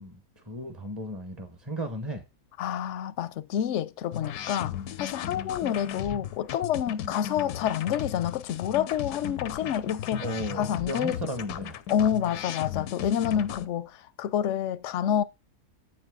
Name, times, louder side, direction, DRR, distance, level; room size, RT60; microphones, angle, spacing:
voice 1, 0.0-2.2 10.2-11.8, equal, 20° right, 1.1 m, -35 dB
voice 2, 2.6-10.3 10.5-11.2 11.9-15.2, left 9 dB, 60° left, 0.8 m, -28 dB
sound 1, 4.1-13.7, left 10 dB, 90° left, 1.3 m, -36 dB
8.6 x 8.4 x 3.7 m
omnidirectional pair, 1.6 m